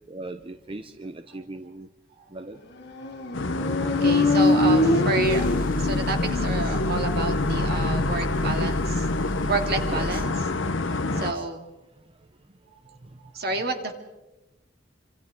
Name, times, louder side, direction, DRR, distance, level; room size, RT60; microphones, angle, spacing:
voice 1, 0.1-1.9 2.3-2.6 9.9-10.3 11.1-11.4 13.5-13.7, right 2 dB, 30° right, 7 dB, 0.8 m, -38 dB
Motorcycle, 2.8-6.4, left 2 dB, 65° left, 2.4 m, -23 dB
sound 1, 3.3-11.3, left 3 dB, 85° left, 1.0 m, -27 dB
voice 2, 4.0-5.5 5.8-9.1 9.5-10.3 11.1-11.6 12.9-13.0 13.3-13.9, right 3 dB, 55° right, 4 dB, 2.5 m, -29 dB
sound 2, 5.2-10.3, equal, 50° left, 1.6 m, -32 dB
27.0 x 26.0 x 3.7 m, 1.0 s
head